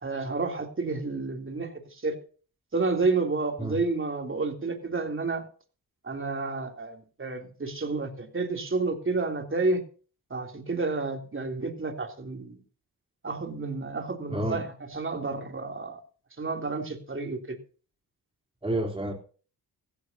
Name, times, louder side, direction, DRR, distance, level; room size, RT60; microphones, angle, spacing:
voice 1, 0.0-2.2 2.7-5.4 6.0-9.8 10.3-12.6 13.2-16.0 16.4-17.6, right 3 dB, 30° right, 3 dB, 3.2 m, -30 dB
voice 2, 18.6-19.1, right 1 dB, 15° right, 1 dB, 3.6 m, -29 dB
16.0 x 15.0 x 2.8 m, 0.40 s
cardioid pair, 65°, 38 cm